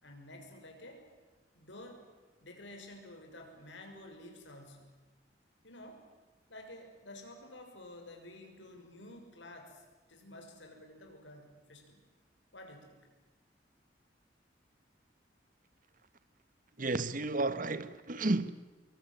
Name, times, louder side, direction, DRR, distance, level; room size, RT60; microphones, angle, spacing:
voice 1, 0.0-1.1 1.5-2.1 2.4-5.0 5.6-6.1 6.5-9.8 10.1-12.0 12.5-13.0, left 1 dB, 85° left, 6.4 m, -51 dB
voice 2, 16.8-18.5, right 2 dB, 50° right, 1.2 m, -32 dB
26.0 x 23.0 x 9.1 m
head